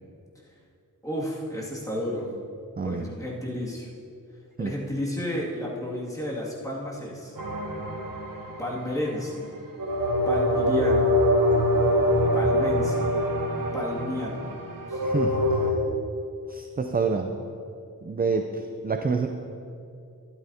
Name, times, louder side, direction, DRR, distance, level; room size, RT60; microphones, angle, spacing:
voice 1, 1.0-2.3 2.8-3.9 4.6-7.3 8.6-9.5 10.3-11.1 12.3-13.1 13.7-14.5 14.9-15.0, left 1 dB, 10° left, -6 dB, 2.2 m, -32 dB
sound 1, 7.4-9.1 9.8-15.7, left 1 dB, 70° right, 1.1 m, -24 dB
voice 2, 15.0-15.4 16.5-17.4 18.0-19.3, right 4 dB, 25° right, 5 dB, 0.4 m, -27 dB
12.5 x 12.0 x 2.8 m, 2.5 s
wide cardioid pair, 100°, 35 cm